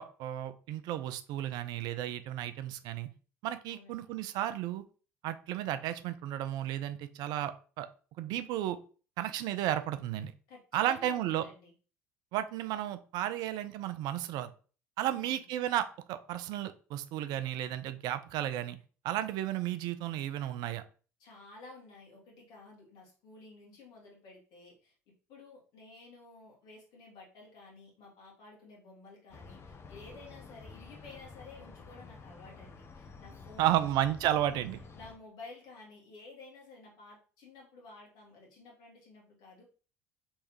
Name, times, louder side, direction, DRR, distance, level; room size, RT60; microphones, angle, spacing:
voice 1, 0.0-3.1 3.4-4.8 5.2-7.9 8.2-8.8 9.2-10.3 10.7-11.5 12.3-14.5 15.0-18.8 19.0-20.8 33.6-34.8, right 12 dB, 60° right, 11 dB, 0.4 m, -33 dB
voice 2, 3.7-4.1 10.5-11.7 15.0-15.5 21.2-24.9 25.3-33.8 34.9-39.6, left 3 dB, 60° left, -3 dB, 1.9 m, -53 dB
sound 1, 29.3-35.2, left 4 dB, 30° left, 0.8 m, -50 dB
3.5 x 3.1 x 3.1 m, 0.38 s
figure-of-eight pair, 60°, 8 cm